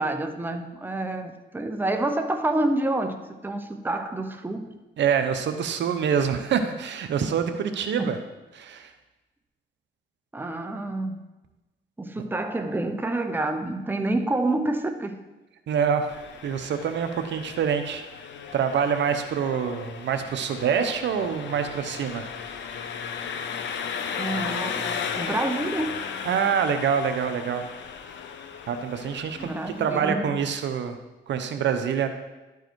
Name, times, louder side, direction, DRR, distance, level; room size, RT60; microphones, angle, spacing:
voice 1, 0.0-4.7 8.0-8.1 10.3-11.2 12.0-15.1 24.2-25.9 29.4-30.3, right 2 dB, 10° right, 6 dB, 0.8 m, -28 dB
voice 2, 5.0-8.2 8.5-8.9 12.2-12.3 15.7-16.1 16.4-18.0 18.5-22.3 26.3-27.6 28.7-29.5 29.8-31.0 31.3-32.1, right 7 dB, 65° right, 8 dB, 0.8 m, -26 dB
Engine, 16.1-30.1, left 6 dB, 65° left, 0.8 m, -35 dB
11.5 x 4.7 x 4.6 m, 1.1 s
cardioid pair, 90°, 20 cm